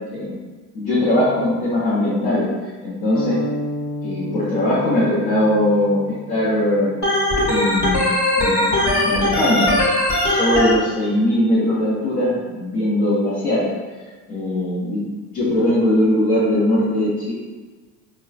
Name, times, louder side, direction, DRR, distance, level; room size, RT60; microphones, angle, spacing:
voice 1, 0.7-2.5 2.8-3.4 4.0-6.9 7.5-9.7 10.2-13.7 14.3-15.0 15.3-17.3, left 1 dB, 80° left, -9 dB, 1.1 m, -20 dB
sound 1, 3.1-7.1, left 1 dB, 40° left, 0.6 m, -31 dB
Organ, 7.0-10.7, left 1 dB, 55° left, 1.2 m, -19 dB
4.7 x 2.3 x 2.3 m, 1.3 s
hypercardioid pair, 60°, 48 cm